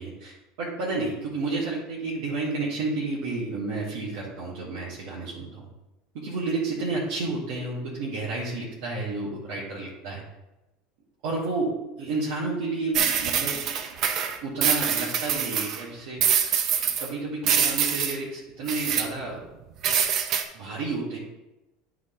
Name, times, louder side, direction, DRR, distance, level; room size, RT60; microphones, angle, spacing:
voice 1, 0.0-5.7 6.1-10.2 11.2-13.7 14.4-16.3 16.8-19.4 20.5-21.2, right 3 dB, 70° right, -6 dB, 1.8 m, -31 dB
sound 1, 12.9-15.8 16.2-17.1 17.4-18.2 18.7-19.1 19.8-20.4, right 8 dB, 50° right, 0.8 m, -24 dB
9.5 x 3.8 x 3.8 m, 1.0 s
supercardioid pair, 110°, 0 cm